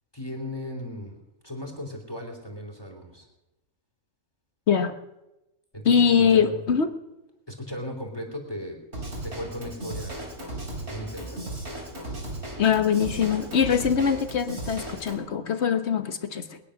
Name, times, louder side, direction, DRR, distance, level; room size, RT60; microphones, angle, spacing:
voice 1, 0.1-1.2 1.4-3.3 5.7-6.6 7.5-8.8 9.2-10.3 10.8-11.5, equal, 15° left, 2 dB, 3.0 m, -36 dB
voice 2, 5.8-6.9 12.6-16.6, left 7 dB, 55° left, 10 dB, 1.3 m, -22 dB
Drum kit / Drum, 8.9-15.2, right 1 dB, 50° right, 3.8 m, -36 dB
21.5 x 9.9 x 6.4 m, 0.96 s
omnidirectional pair, 1.4 m